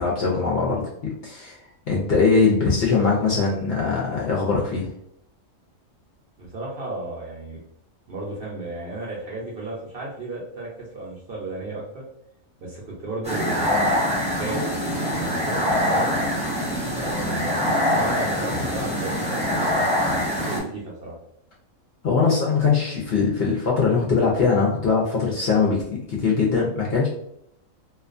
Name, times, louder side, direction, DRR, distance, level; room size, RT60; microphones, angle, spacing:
voice 1, 0.0-1.6 1.9-4.9 22.0-25.8 26.1-27.1, left 4 dB, 60° left, -3 dB, 0.6 m, -21 dB
voice 2, 6.4-7.6 8.1-12.0 12.6-14.1 14.3-16.1 16.9-21.1, right 2 dB, 55° right, -4 dB, 0.7 m, -34 dB
sound 1, 13.2-20.6, left 1 dB, 10° right, 0.4 m, -24 dB
2.4 x 2.2 x 2.4 m, 0.74 s
omnidirectional pair, 1.4 m